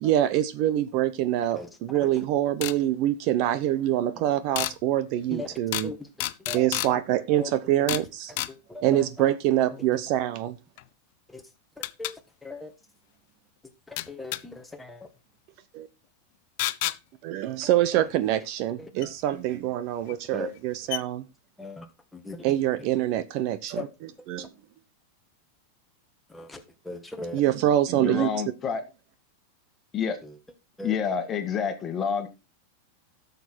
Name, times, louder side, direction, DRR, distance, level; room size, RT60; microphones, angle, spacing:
voice 1, 0.0-5.9 6.5-8.3 8.8-10.6 15.7-15.9 17.2-21.2 22.4-23.9 24.3-24.5 27.3-28.3, right 13 dB, 40° right, 0.7 m, -25 dB
voice 2, 1.5-2.3 4.1-4.3 5.3-6.1 6.5-6.7 7.3-7.5 7.9-8.0 8.5-9.3 9.7-10.0 11.3-11.4 11.8-12.7 13.9-15.1 17.9-18.1 18.8-18.9 20.3-20.5 21.6-21.9 22.1-22.4 22.8-22.9 23.6-23.9 24.4-24.5 26.3-27.4 30.2-30.4 30.8-31.0, left 2 dB, 5° left, 1.4 m, -39 dB
sound 1, 2.6-2.8 4.6-4.8 5.7-5.9 6.2-6.9 7.9-8.1 8.4-8.5 10.8-10.9 11.8-12.1 14.0-14.4 16.6-17.0 19.0-19.1 20.1-20.2 20.6-20.7 20.9-21.0, left 18 dB, 50° left, 0.6 m, -29 dB
voice 3, 27.9-28.8 29.9-30.2 30.8-32.3, left 7 dB, 20° left, 1.8 m, -28 dB
12.5 x 6.7 x 4.5 m
supercardioid pair, 165°, 0 cm